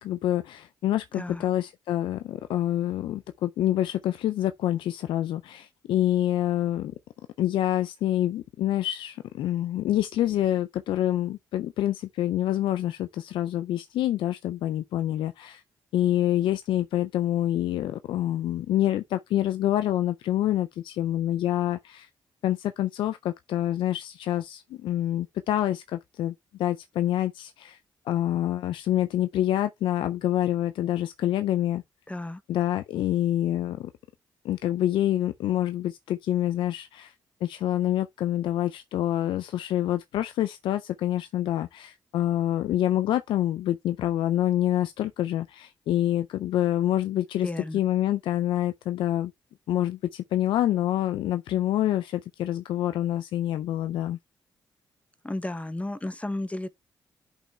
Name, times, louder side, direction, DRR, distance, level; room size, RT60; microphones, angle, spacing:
voice 1, 0.0-6.9 7.4-15.6 15.9-22.1 22.4-27.8 28.1-31.8 32.5-33.9 34.4-37.1 37.4-49.3 49.7-54.2, left 12 dB, 80° left, 0.4 m, -27 dB
voice 2, 1.1-1.5 32.1-32.4 47.4-47.8 55.2-56.7, left 1 dB, 15° left, 0.7 m, -33 dB
11.0 x 5.5 x 2.3 m
supercardioid pair, 60°, 8 cm